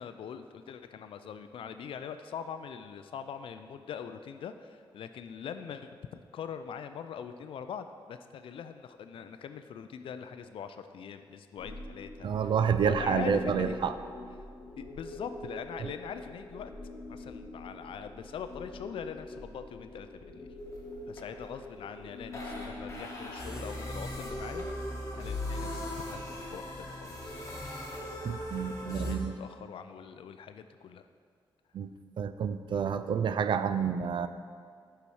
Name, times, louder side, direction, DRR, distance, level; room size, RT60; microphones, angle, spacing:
voice 1, 0.0-12.5 12.8-13.8 14.8-16.7 17.1-20.5 21.1-27.4 28.5-28.6 28.8-31.1 34.0-34.1, left 7 dB, 75° left, 9 dB, 0.4 m, -42 dB
sound 1, 11.6-29.1, left 1 dB, 35° left, 1.5 m, -41 dB
voice 2, 12.2-13.9 15.8-15.9 28.2-29.3 31.7-34.3, right 7 dB, 60° right, 11 dB, 0.4 m, -29 dB
6.9 x 5.7 x 4.8 m, 2.2 s
cardioid pair, 105°, 9 cm